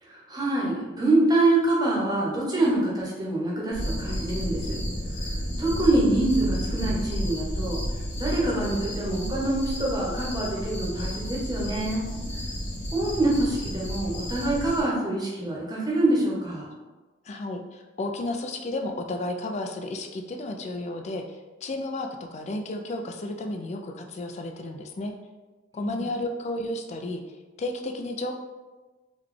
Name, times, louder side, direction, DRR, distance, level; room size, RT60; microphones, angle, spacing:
voice 1, 0.0-4.8 5.6-7.8 8.2-12.1 12.9-16.7 25.7-26.0, right 2 dB, 20° right, -4 dB, 0.8 m, -25 dB
sound 1, 3.7-14.8, equal, 55° left, 1.3 m, -31 dB
voice 2, 17.3-25.1 25.7-28.3, left 2 dB, 35° left, 4 dB, 0.3 m, -33 dB
3.9 x 2.2 x 3.2 m, 1.2 s
head